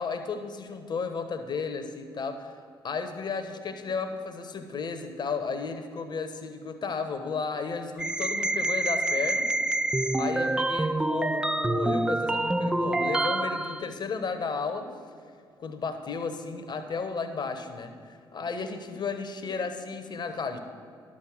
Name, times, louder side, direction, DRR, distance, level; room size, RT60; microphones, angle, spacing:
voice 1, 0.0-2.6 2.8-9.5 10.1-14.9 15.6-20.6, left 5 dB, 40° left, 8 dB, 1.0 m, -33 dB
sound 1, 8.0-13.9, right 2 dB, 5° right, 0.4 m, -27 dB
11.0 x 6.3 x 7.5 m, 2.2 s
figure-of-eight pair, 45°, 11 cm